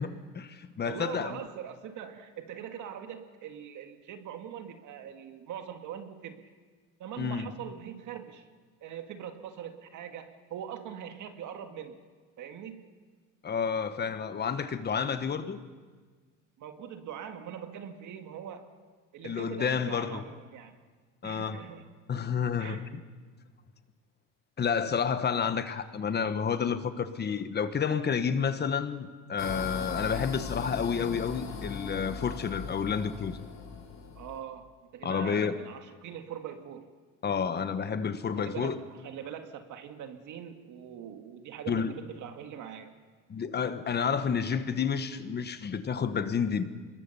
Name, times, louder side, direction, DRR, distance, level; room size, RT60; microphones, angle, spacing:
voice 1, 0.0-1.4 7.2-7.5 13.4-15.6 19.2-20.2 21.2-21.6 22.1-22.8 24.6-33.4 35.0-35.6 37.2-38.7 41.7-41.9 43.3-46.7, left 6 dB, 25° left, 1.2 m, -30 dB
voice 2, 0.8-6.4 7.0-8.4 8.8-12.0 12.4-12.9 16.6-18.7 19.1-20.8 21.2-21.9 22.6-22.9 34.2-36.9 38.4-43.0, right 9 dB, 50° right, 1.8 m, -42 dB
sound 1, 29.4-34.4, left 6 dB, 45° left, 3.7 m, -39 dB
25.5 x 21.5 x 5.6 m
cardioid pair, 120°, 37 cm